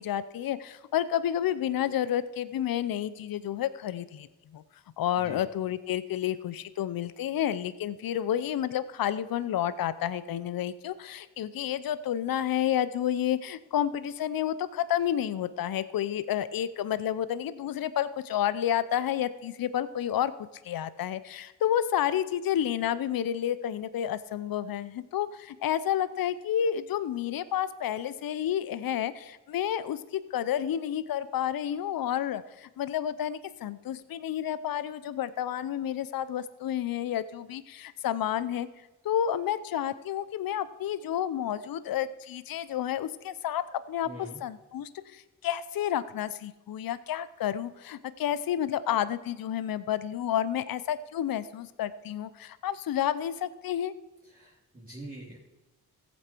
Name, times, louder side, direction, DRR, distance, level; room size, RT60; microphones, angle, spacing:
voice 1, 0.0-4.3 4.5-4.6 5.0-20.3 20.6-38.7 39.0-44.1 44.4-53.9, left 10 dB, 65° left, 15 dB, 0.7 m, -30 dB
voice 2, 44.0-44.4 54.2-55.4, right 1 dB, 20° right, -5 dB, 3.1 m, -44 dB
14.5 x 8.3 x 4.5 m, 1.1 s
supercardioid pair, 50°, 38 cm